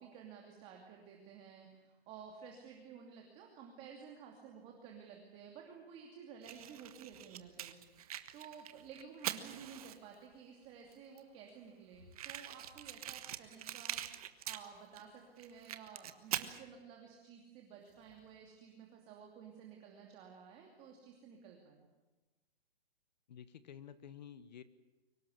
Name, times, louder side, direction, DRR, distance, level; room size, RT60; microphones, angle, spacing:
voice 1, 0.0-7.8 8.3-14.0 14.5-21.9, right 7 dB, 20° right, 1 dB, 2.6 m, -53 dB
Fire, 6.4-10.2 10.9-11.0 11.2-11.3 11.5-11.6 12.1-15.0 15.4-16.6, right 11 dB, 35° right, 1.4 m, -43 dB
sound 1, 10.4-11.0 12.0-13.5 15.5-15.7 17.7-18.6, left 3 dB, 85° left, 7.8 m, -67 dB
voice 2, 23.3-24.6, left 9 dB, 45° left, 14 dB, 1.4 m, -51 dB
24.0 x 18.5 x 10.0 m, 1.2 s
hypercardioid pair, 165°, 31 cm